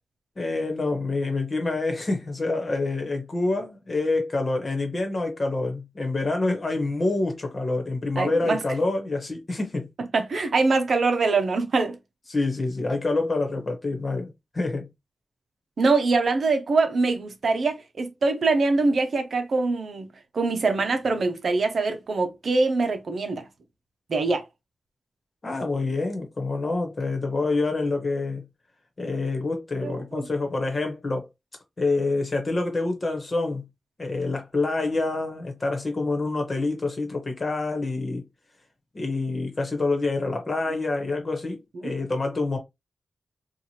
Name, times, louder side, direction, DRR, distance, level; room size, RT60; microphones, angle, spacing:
voice 1, 0.4-9.9 12.3-14.9 25.4-28.5 29.0-31.3 31.8-33.7 34.0-38.2 38.9-42.6, left 3 dB, 35° left, 1.2 m, -27 dB
voice 2, 8.2-8.6 10.0-12.0 15.8-23.5 24.1-24.4 29.8-30.3 41.8-41.9, right 3 dB, 60° right, 0.7 m, -24 dB
4.5 x 2.4 x 2.9 m
wide cardioid pair, 145°, 0 cm